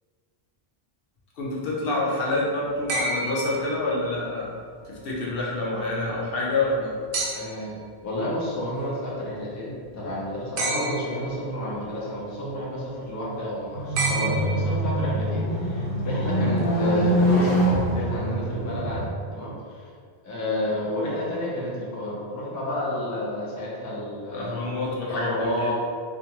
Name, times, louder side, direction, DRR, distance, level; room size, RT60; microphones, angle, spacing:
voice 1, 1.4-4.5 4.8-7.0 24.3-25.7, left 2 dB, 65° left, -4 dB, 0.7 m, -27 dB
sound 1, 2.9-4.3 7.1-7.8 10.6-11.4 14.0-15.0 16.6-16.7, right 2 dB, 80° right, 0.8 m, -30 dB
voice 2, 7.3-19.8 20.2-24.6 25.1-25.7, left 1 dB, 30° left, -6 dB, 0.3 m, -30 dB
sound 2, 13.7-19.1, right 1 dB, 80° left, 1.1 m, -24 dB
2.5 x 2.3 x 2.8 m, 2.1 s
omnidirectional pair, 1.1 m